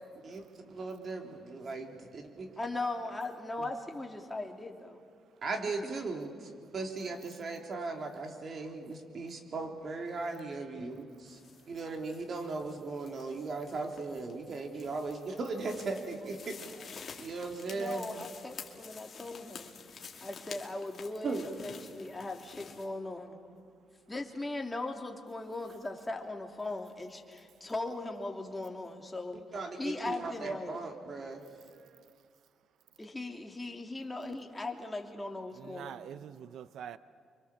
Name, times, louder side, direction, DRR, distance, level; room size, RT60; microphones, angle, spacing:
voice 1, 0.2-2.5 3.6-3.7 5.4-11.4 11.7-16.8 17.2-18.1 21.2-21.5 29.5-31.4, right 3 dB, 50° right, 3.5 m, -38 dB
voice 2, 2.6-5.0 5.8-6.0 17.7-19.7 20.2-23.4 24.1-29.4 29.8-30.8 33.0-36.1, left 2 dB, 15° left, 2.8 m, -39 dB
sound 1, 11.3-22.9, left 6 dB, 45° left, 2.6 m, -50 dB
voice 3, 31.7-32.1 35.5-37.0, right 9 dB, 75° right, 0.7 m, -46 dB
29.0 x 24.0 x 7.4 m
cardioid pair, 90°, 0 cm